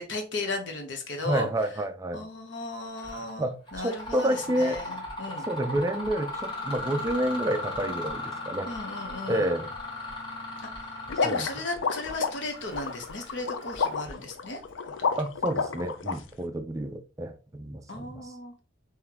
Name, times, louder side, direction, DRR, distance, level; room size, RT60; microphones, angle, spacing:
voice 1, 0.0-1.5 2.1-3.5 3.7-5.5 8.6-9.5 10.6-10.9 11.2-14.6 15.1-15.2 17.9-18.6, left 2 dB, 70° left, 4 dB, 0.9 m, -35 dB
voice 2, 1.2-2.2 3.4-4.8 5.5-8.7 9.3-9.7 11.2-11.5 15.2-18.3, right 1 dB, 15° right, 7 dB, 0.3 m, -29 dB
Mechanisms, 3.0-3.3 3.7-14.2, left 2 dB, 25° left, 1.4 m, -37 dB
sound 1, 3.0-3.1 3.7-4.1 4.7-5.1 5.7-6.1 6.7-7.1 7.7-8.1 8.7-9.1 9.7-10.1 10.7-11.1 11.7-12.1 12.7-13.1 13.7-14.1, equal, 35° right, 1.0 m, -48 dB
sound 2, 11.1-16.1, left 5 dB, 85° left, 0.5 m, -30 dB
3.7 x 3.1 x 2.9 m, 0.34 s
head